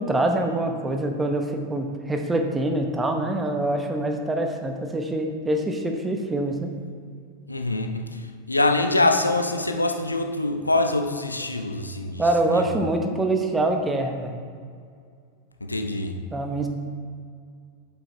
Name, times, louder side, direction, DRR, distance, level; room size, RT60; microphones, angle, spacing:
voice 1, 0.0-6.7 12.2-14.3 16.3-16.7, right 2 dB, 15° right, 4 dB, 0.8 m, -25 dB
voice 2, 7.5-12.6 15.6-16.2, left 2 dB, 80° left, 5 dB, 0.6 m, -24 dB
8.6 x 7.7 x 3.3 m, 2.2 s
figure-of-eight pair, 90°, 0 cm